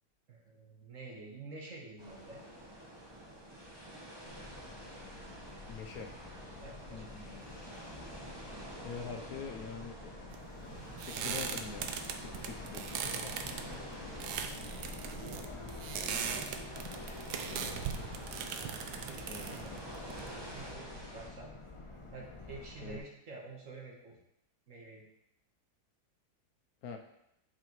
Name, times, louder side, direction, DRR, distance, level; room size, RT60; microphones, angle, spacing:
voice 1, 0.3-2.4 6.6-7.1 14.4-14.8 19.0-19.7 20.5-21.6 22.1-24.2 24.7-25.0, right 3 dB, 55° right, -1 dB, 1.4 m, -49 dB
sound 1, 2.0-21.3, right 1 dB, 20° right, 1.0 m, -49 dB
Subway metro underground, 4.2-23.0, left 2 dB, 45° left, 0.4 m, -47 dB
voice 2, 5.7-6.1 6.9-7.5 8.8-10.1 10.6-11.9 12.2-13.3 15.3-16.1 17.5-17.9 19.3-19.8 22.8-23.0 26.8-27.0, left 6 dB, 70° left, 4 dB, 1.1 m, -46 dB
sound 2, 10.3-20.7, right 7 dB, 90° right, 1.2 m, -40 dB
8.2 x 4.8 x 3.0 m, 0.81 s
omnidirectional pair, 1.7 m